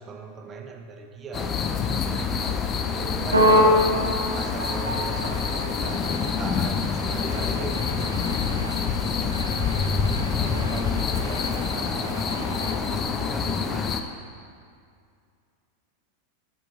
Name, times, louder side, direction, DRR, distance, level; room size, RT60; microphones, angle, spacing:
voice 1, 0.0-2.0 2.9-3.6 4.3-8.9 10.3-14.2, right 4 dB, 25° right, 4 dB, 0.7 m, -39 dB
sound 1, 1.3-14.0, left 6 dB, 25° left, 0.4 m, -27 dB
sound 2, 3.3-12.8, equal, 80° right, 0.8 m, -27 dB
7.5 x 6.0 x 3.6 m, 2.2 s
figure-of-eight pair, 90°, 0 cm